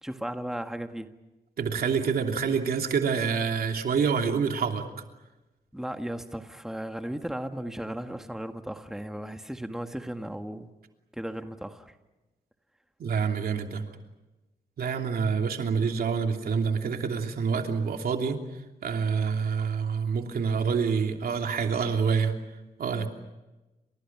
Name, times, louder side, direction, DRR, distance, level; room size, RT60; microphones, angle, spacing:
voice 1, 0.0-1.1 5.7-10.7 11.2-11.9, right 1 dB, 5° right, 6 dB, 1.7 m, -35 dB
voice 2, 1.6-4.8 13.0-13.8 14.8-18.4 18.8-22.3 22.8-23.1, right 6 dB, 75° right, 4 dB, 3.0 m, -27 dB
30.0 x 27.0 x 6.1 m, 1.1 s
cardioid pair, 80°, 15 cm